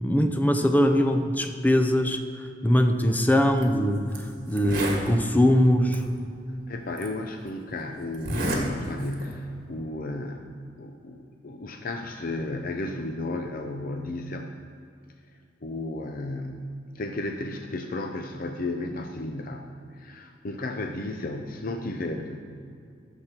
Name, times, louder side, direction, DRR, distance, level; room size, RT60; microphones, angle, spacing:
voice 1, 0.0-6.0, equal, 10° left, 6 dB, 0.6 m, -22 dB
Zipper (clothing), 3.5-3.6 4.1-4.2 4.5-5.1 5.9-6.0 7.0-7.1 8.1-8.6 9.0-9.3, right 1 dB, 55° right, 1.8 m, -29 dB
voice 2, 6.5-10.5 10.8-14.5 15.6-16.7 16.9-19.7 19.9-22.4, left 2 dB, 50° left, 4 dB, 0.6 m, -33 dB
13.5 x 7.2 x 4.5 m, 2.4 s
head